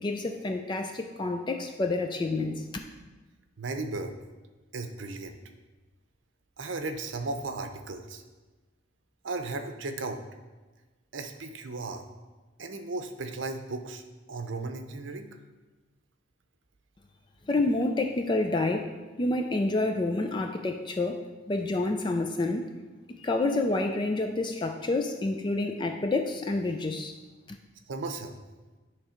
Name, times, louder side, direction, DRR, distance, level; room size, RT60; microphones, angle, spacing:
voice 1, 0.0-2.7 17.5-18.9 19.2-21.2 21.5-22.7 23.2-27.1 27.5-27.6, left 2 dB, 25° left, 5 dB, 0.4 m, -28 dB
voice 2, 3.6-4.2 4.7-5.4 6.6-8.2 9.2-10.2 11.1-12.0 12.6-14.0 14.3-15.3 27.9-28.4, right 3 dB, 75° right, 6 dB, 0.7 m, -35 dB
9.9 x 3.3 x 5.0 m, 1.2 s
head